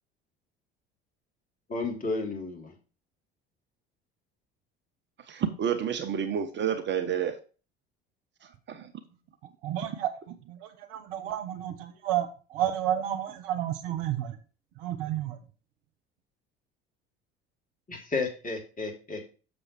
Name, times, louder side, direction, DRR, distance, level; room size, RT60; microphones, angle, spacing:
voice 1, 1.7-2.7 17.9-19.2, left 3 dB, 30° left, 3.0 m, -32 dB
voice 2, 5.3-7.4 8.4-8.9, right 8 dB, 40° right, 1.0 m, -30 dB
voice 3, 9.6-10.1 10.5-14.4 14.8-15.4, right 11 dB, 65° right, 1.3 m, -31 dB
7.0 x 6.9 x 4.5 m
figure-of-eight pair, 60°, 29 cm